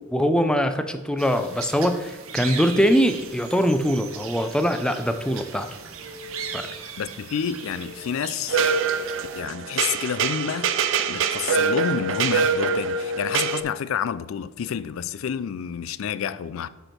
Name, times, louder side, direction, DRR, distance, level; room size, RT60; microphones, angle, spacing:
voice 1, 0.1-5.7 6.5-6.7, equal, 5° left, 0.4 m, -22 dB
sound 1, 1.2-9.4, right 6 dB, 85° right, 0.9 m, -38 dB
voice 2, 7.0-8.6 9.3-10.7 11.1-16.7, left 7 dB, 75° left, 0.4 m, -29 dB
sound 2, 8.5-13.6, right 5 dB, 60° right, 0.4 m, -24 dB
7.8 x 4.5 x 4.4 m
head